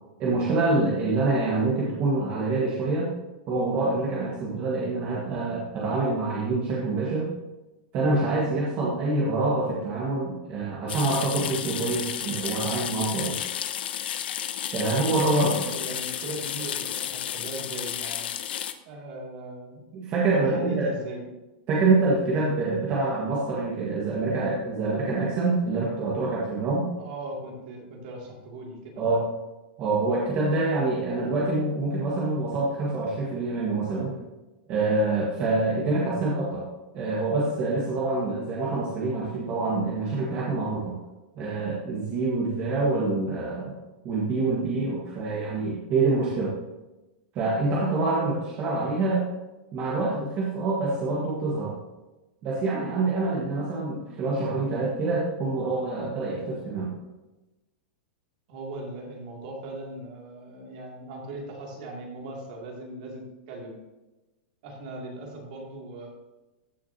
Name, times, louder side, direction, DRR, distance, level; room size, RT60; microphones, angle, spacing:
voice 1, 0.2-3.1 3.5-7.3 7.9-13.4 14.7-15.5 19.9-20.9 21.7-26.8 29.0-29.2 29.8-34.2 34.7-36.6 36.9-41.0 41.3-43.8 44.0-46.5 47.3-49.2 49.7-51.7 52.4-56.9, right 3 dB, 25° right, -5 dB, 1.6 m, -26 dB
sound 1, 10.9-18.7, left 10 dB, 85° left, 0.7 m, -32 dB
voice 2, 15.3-18.3 18.9-19.8 20.3-21.3 27.0-29.2 58.5-63.8 64.6-66.1, right 2 dB, 45° right, -1 dB, 2.6 m, -39 dB
14.5 x 6.1 x 2.8 m, 1.1 s
supercardioid pair, 175°, 5 cm